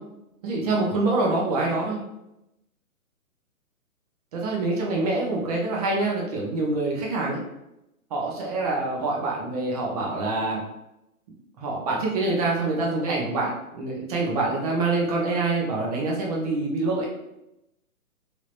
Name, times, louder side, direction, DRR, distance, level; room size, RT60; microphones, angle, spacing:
voice 1, 0.4-2.0 4.3-7.4 8.1-10.6 11.6-17.1, right 2 dB, 25° right, -2 dB, 0.7 m, -25 dB
3.4 x 2.8 x 2.5 m, 0.87 s
figure-of-eight pair, 130°, 44 cm